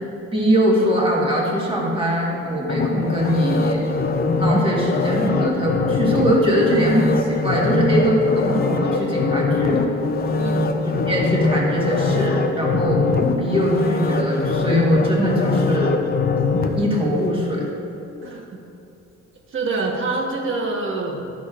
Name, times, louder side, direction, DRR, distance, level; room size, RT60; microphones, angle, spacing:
voice 1, 0.3-3.9 4.4-9.8 10.9-13.0 13.4-15.9 16.8-17.6, equal, 20° right, -4 dB, 1.5 m, -21 dB
sound 1, 2.7-17.7 18.2-18.3, left 3 dB, 35° left, 0.4 m, -22 dB
voice 2, 10.4-10.7 18.2-18.5 19.5-21.3, right 3 dB, 45° right, 0 dB, 1.2 m, -25 dB
12.0 x 6.1 x 2.5 m, 2.8 s
cardioid pair, 145°, 29 cm